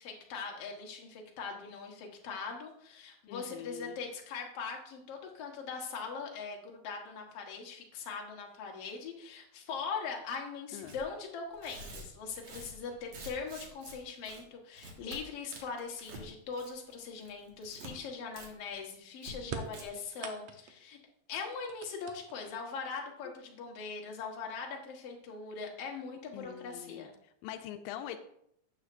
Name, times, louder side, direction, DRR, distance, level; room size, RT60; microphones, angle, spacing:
voice 1, 0.0-21.0 21.3-27.1, left 5 dB, 55° left, 0 dB, 2.0 m, -41 dB
voice 2, 3.3-4.0 10.7-11.0 26.3-28.2, left 11 dB, 85° left, 8 dB, 2.3 m, -44 dB
Tearing, 10.8-11.0 11.5-14.0 14.2-14.4 14.7-15.2 15.5-16.2 16.5-16.9 17.2-17.9 18.3-18.5 18.7-18.8 19.2-19.3 19.7-19.8, right 2 dB, 50° right, 2.4 m, -48 dB
sound 1, 19.5-20.9 21.4-22.6 23.6-23.7 24.7-24.8 25.3-25.8, right 6 dB, 85° right, 1.4 m, -43 dB
13.0 x 8.0 x 2.6 m, 0.72 s
omnidirectional pair, 4.0 m